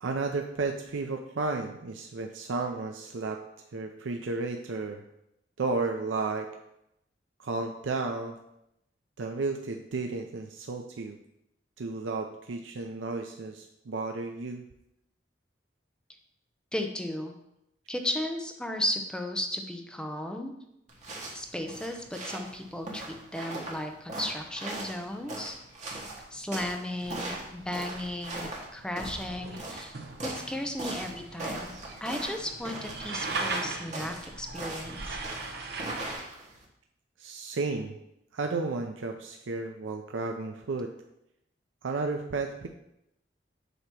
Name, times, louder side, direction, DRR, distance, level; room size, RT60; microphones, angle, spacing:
voice 1, 0.0-3.4 3.7-5.0 5.6-6.5 7.4-8.4 9.2-11.2 11.8-14.7 37.2-37.9 38.3-40.9 41.8-42.7, right 3 dB, 90° right, 4 dB, 0.5 m, -33 dB
voice 2, 16.7-17.3 17.9-20.5 21.3-25.5 25.9-26.1 26.3-30.0 30.2-31.7 32.0-35.2, left 1 dB, 5° left, 4 dB, 0.6 m, -35 dB
sound 1, 20.9-36.6, right 2 dB, 40° right, 1.4 m, -40 dB
sound 2, 27.0-36.1, right 3 dB, 60° right, 0.9 m, -39 dB
8.0 x 2.9 x 6.0 m, 0.82 s
head